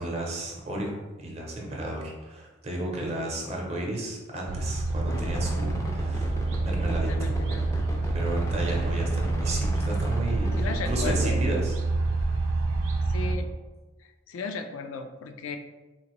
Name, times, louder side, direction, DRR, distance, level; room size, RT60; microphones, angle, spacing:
voice 1, 0.0-7.4 8.1-11.8, right 1 dB, 30° right, -1 dB, 0.6 m, -33 dB
sound 1, 4.5-13.4, right 3 dB, 90° right, 0.4 m, -27 dB
sound 2, 5.1-11.3, left 1 dB, 15° left, 0.3 m, -36 dB
voice 2, 7.1-7.8 10.6-11.4 13.1-13.5 14.3-15.6, left 4 dB, 90° left, 6 dB, 0.4 m, -35 dB
3.8 x 2.5 x 3.0 m, 1.2 s
head